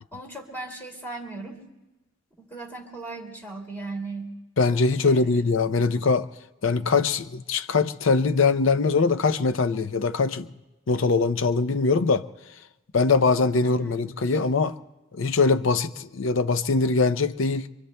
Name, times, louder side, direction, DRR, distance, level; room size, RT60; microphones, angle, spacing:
voice 1, 0.1-1.7 2.4-4.3 5.0-5.4 13.6-14.4, right 3 dB, 10° left, 2.5 m, -38 dB
voice 2, 4.6-6.3 6.6-10.5 10.9-12.3 12.9-14.8 15.1-17.7, left 4 dB, 75° left, 0.6 m, -22 dB
26.0 x 24.5 x 2.2 m
head